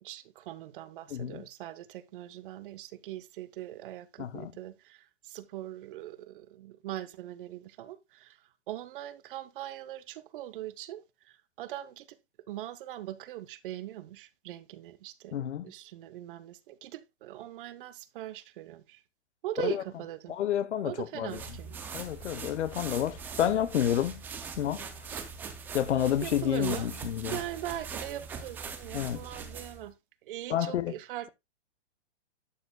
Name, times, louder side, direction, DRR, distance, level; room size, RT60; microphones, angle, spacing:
voice 1, 0.0-8.4 8.7-11.0 11.6-12.1 12.5-19.0 19.4-20.4 20.8-21.8 25.1-25.3 26.2-26.9 27.3-29.9 30.3-31.3, right 13 dB, 50° right, 0.9 m, -41 dB
voice 2, 1.1-1.5 4.2-4.5 15.3-15.7 19.6-19.8 20.3-21.6 21.9-24.2 24.6-24.9 25.7-27.4 28.9-29.2 30.5-30.9, left 10 dB, 85° left, 1.0 m, -30 dB
sound 1, 21.3-29.9, right 5 dB, 5° right, 0.3 m, -41 dB
11.5 x 6.7 x 2.2 m
hypercardioid pair, 150°, 34 cm